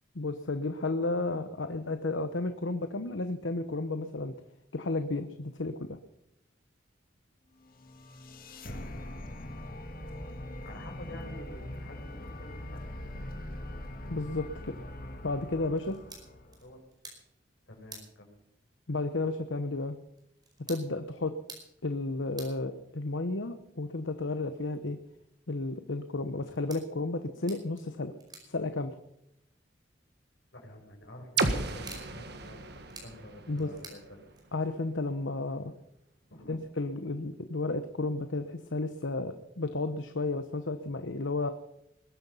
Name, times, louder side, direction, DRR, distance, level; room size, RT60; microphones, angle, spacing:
voice 1, 0.1-4.3 4.7-6.0 14.1-14.7 15.2-16.0 18.9-20.0 20.7-21.3 21.8-25.0 25.5-28.1 28.5-28.9 33.5-33.7 34.5-35.7 36.5-41.5, left 2 dB, 85° left, 9 dB, 1.1 m, -32 dB
sound 1, 7.6-16.8, left 1 dB, 50° left, 2.3 m, -42 dB
voice 2, 10.6-12.8 16.6-16.8 17.7-18.4 30.5-32.7 33.0-34.2 36.3-36.5, left 1 dB, 65° left, 2 dB, 5.6 m, -48 dB
sound 2, 15.7-34.8, right 3 dB, 20° right, 5.0 m, -54 dB
sound 3, 31.4-35.2, right 3 dB, 60° right, 1.7 m, -35 dB
21.5 x 11.0 x 5.6 m, 0.81 s
head